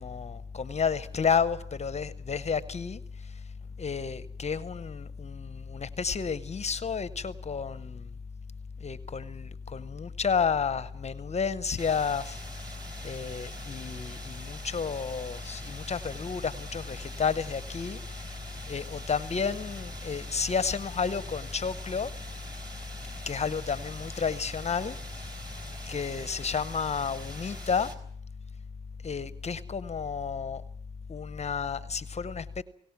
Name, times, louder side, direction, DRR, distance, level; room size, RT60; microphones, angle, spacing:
voice 1, 0.0-3.0 3.8-8.1 8.8-12.4 13.0-18.2 18.7-22.1 23.3-25.3 25.8-27.9 29.0-30.6 31.1-32.6, left 6 dB, 35° left, 0.8 m, -31 dB
sound 1, 11.8-28.0, right 1 dB, 20° right, 3.8 m, -44 dB
29.0 x 18.0 x 5.9 m
cardioid pair, 90°, 20 cm